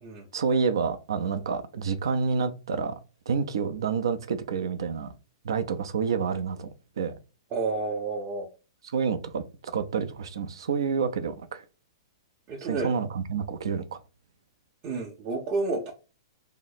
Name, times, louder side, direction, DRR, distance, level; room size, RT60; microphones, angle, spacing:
voice 1, 0.3-3.0 3.3-5.1 5.4-6.7 7.0-7.2 8.9-11.6 12.6-14.0, right 5 dB, 80° right, 0.5 m, -28 dB
voice 2, 7.5-8.5 12.5-12.9 14.8-15.9, right 3 dB, 35° right, 0.6 m, -30 dB
2.8 x 2.0 x 4.0 m
hypercardioid pair, 135°, 2 cm